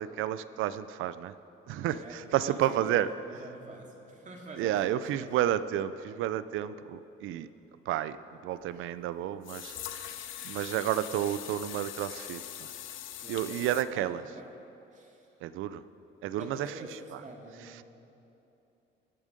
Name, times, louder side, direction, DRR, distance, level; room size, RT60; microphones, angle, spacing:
voice 1, 0.0-1.3 1.7-3.1 4.6-7.5 7.9-8.2 8.4-10.2 10.4-12.7 13.3-14.2 15.4-15.8 16.2-16.7, right 12 dB, 90° right, 14 dB, 0.5 m, -31 dB
voice 2, 1.9-5.2 13.2-14.6 14.9-15.3 16.4-17.8, right 2 dB, 40° right, 0 dB, 2.3 m, -46 dB
sound 1, 8.6-8.7 9.4-13.8, left 11 dB, 80° left, 0.7 m, -42 dB
21.5 x 7.4 x 5.1 m, 2.9 s
cardioid pair, 90°, 20 cm